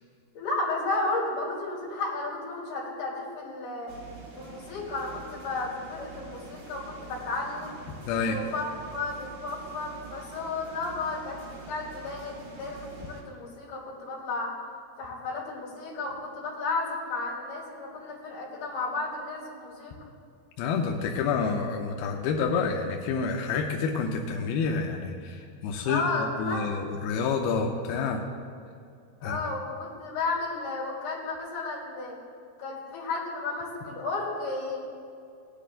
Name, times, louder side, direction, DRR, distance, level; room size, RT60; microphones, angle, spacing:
voice 1, 0.3-3.9 4.4-7.8 8.2-14.5 15.0-19.9 25.8-26.8 29.2-32.2 32.6-34.8, left 3 dB, 60° left, -4 dB, 4.5 m, -33 dB
sound 1, 3.9-13.2, right 4 dB, 75° right, 5.2 m, -46 dB
voice 2, 8.1-8.4 20.6-25.3 25.6-26.0 26.4-28.2 29.2-29.4, left 5 dB, 80° left, 1 dB, 2.3 m, -28 dB
18.0 x 10.0 x 2.5 m, 2.4 s
omnidirectional pair, 4.9 m